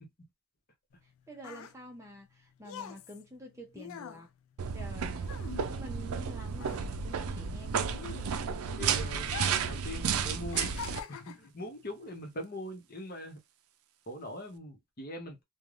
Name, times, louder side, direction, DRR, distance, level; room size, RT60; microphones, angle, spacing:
sound 1, 0.9-6.3 6.5-8.7 9.2-9.8 10.1-11.5 12.2-12.4, left 7 dB, 75° left, 0.4 m, -44 dB
voice 1, 1.0-4.3 4.7-7.9, equal, 15° right, 0.6 m, -48 dB
sound 2, 4.6-11.0, right 6 dB, 85° right, 0.4 m, -32 dB
voice 2, 8.8-10.7 11.1-13.4 14.1-15.4, left 1 dB, 45° left, 0.9 m, -42 dB
3.2 x 2.3 x 2.4 m
head